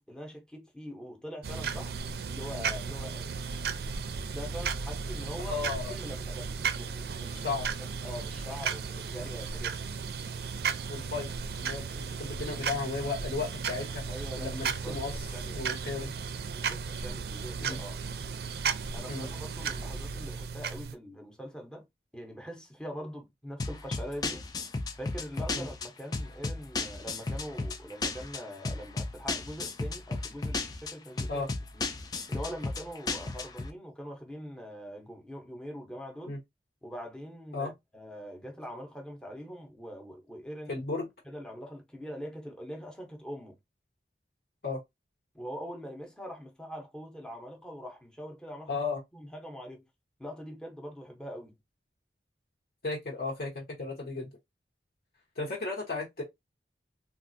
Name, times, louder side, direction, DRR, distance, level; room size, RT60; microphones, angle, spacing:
voice 1, 0.0-2.0 2.3-3.4 4.2-5.6 5.9-7.6 8.0-9.9 14.1-15.0 15.3-15.6 16.5-18.0 18.9-21.9 22.1-24.4 25.0-31.4 31.7-31.8 32.3-36.4 36.8-40.8 41.2-43.6 45.3-48.8 49.1-49.8 50.2-51.6, equal, 5° left, 0.7 m, -43 dB
sound 1, 1.4-20.9, right 6 dB, 60° right, 0.4 m, -35 dB
voice 2, 5.5-5.9 7.2-7.7 10.9-11.3 11.6-14.0 14.4-16.1 17.6-17.8 19.1-19.3 25.5-25.6 31.3-31.5 36.3-36.4 37.5-37.7 40.7-41.1 44.6-44.8 48.7-49.0 52.8-54.3 55.4-56.2, left 3 dB, 60° left, 0.9 m, -35 dB
sound 2, 23.6-33.7, left 3 dB, 20° left, 0.3 m, -35 dB
3.5 x 2.3 x 2.5 m
head